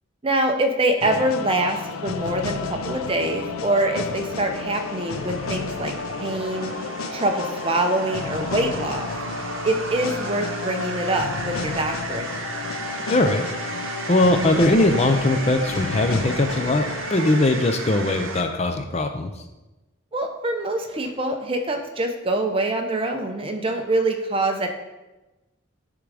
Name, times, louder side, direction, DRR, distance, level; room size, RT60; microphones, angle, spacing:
voice 1, 0.2-6.7 7.1-9.1 9.6-12.4 20.1-24.7, right 1 dB, 25° right, 4 dB, 0.7 m, -25 dB
sound 1, 1.0-17.4, left 4 dB, 85° left, 0.5 m, -32 dB
sound 2, 4.1-18.4, right 4 dB, 75° right, 0.8 m, -35 dB
voice 2, 13.1-13.5 14.1-16.9 17.1-19.3, left 2 dB, 30° left, 7 dB, 0.5 m, -20 dB
10.0 x 3.8 x 4.8 m, 1.1 s
head